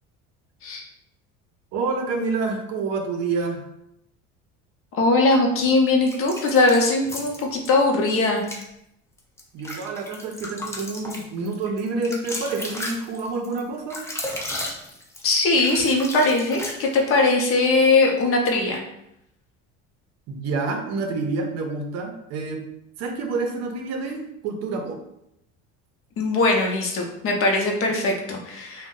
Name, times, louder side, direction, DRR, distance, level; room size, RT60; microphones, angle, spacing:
voice 1, 1.7-3.6 9.5-14.0 20.3-22.6 23.0-25.0 27.9-28.0, right 3 dB, 55° right, 4 dB, 0.6 m, -28 dB
voice 2, 4.9-8.4 15.2-18.8 26.2-28.9, left 3 dB, 45° left, 1 dB, 0.7 m, -20 dB
sound 1, 6.1-7.7 8.4-8.7 9.2-17.2, left 1 dB, 10° left, 0.4 m, -34 dB
2.5 x 2.1 x 3.7 m, 0.81 s
cardioid pair, 130°, 30 cm